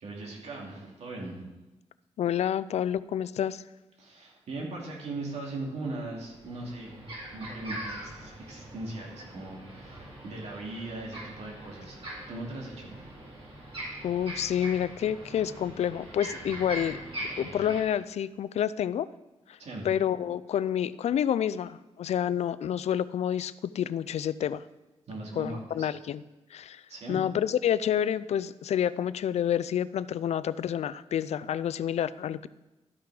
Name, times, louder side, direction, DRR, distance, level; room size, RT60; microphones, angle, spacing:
voice 1, 0.0-1.5 4.0-12.0 12.3-13.1 19.6-19.9 25.1-25.9 26.9-27.2, right 2 dB, 75° right, -2 dB, 2.7 m, -39 dB
voice 2, 2.2-3.6 14.0-17.0 17.4-19.1 19.5-19.6 19.8-24.6 25.4-26.2 26.5-26.8 27.1-32.5, left 9 dB, 75° left, 16 dB, 0.4 m, -29 dB
sound 1, 5.7-5.8 6.2-17.8, right 1 dB, 55° right, 3.9 m, -42 dB
12.5 x 5.9 x 4.9 m, 1.0 s
cardioid pair, 80°, 11 cm